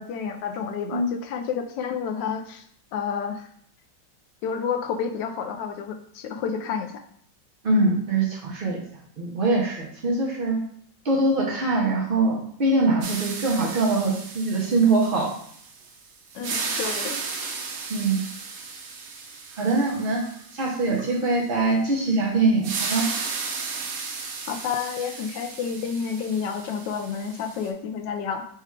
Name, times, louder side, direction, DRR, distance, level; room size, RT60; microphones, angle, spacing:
voice 1, 0.0-2.6 2.9-3.5 4.4-6.9 16.3-17.2 24.5-28.5, left 6 dB, 80° left, 5 dB, 1.2 m, -30 dB
voice 2, 7.6-8.8 9.2-10.6 11.0-15.3 17.9-18.2 19.6-20.2 20.5-23.1, right 2 dB, 85° right, -2 dB, 0.4 m, -23 dB
sound 1, 13.0-15.9 16.3-21.1 22.6-27.7, right 4 dB, 65° right, 0.9 m, -34 dB
4.9 x 2.3 x 4.4 m, 0.63 s
omnidirectional pair, 2.0 m